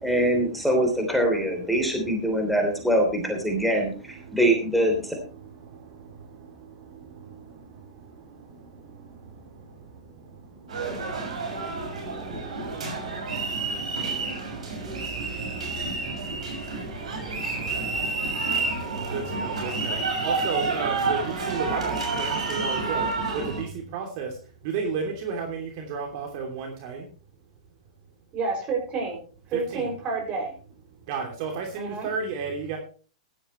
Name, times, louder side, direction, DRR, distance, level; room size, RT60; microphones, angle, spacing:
voice 1, 0.0-5.1, right 1 dB, ahead, 2 dB, 3.2 m, -23 dB
sound 1, 10.7-23.6, right 3 dB, 75° right, 6.5 m, -29 dB
voice 2, 19.1-19.9 20.2-23.1 23.6-23.7 23.9-24.3 24.6-27.0 29.7-29.9 31.1-32.8, right 5 dB, 50° right, 3 dB, 2.9 m, -32 dB
voice 3, 28.3-29.2 29.5-30.5 31.8-32.1, right 4 dB, 35° right, 3 dB, 6.1 m, -29 dB
15.5 x 12.0 x 3.2 m, 0.38 s
hypercardioid pair, 110°, 4 cm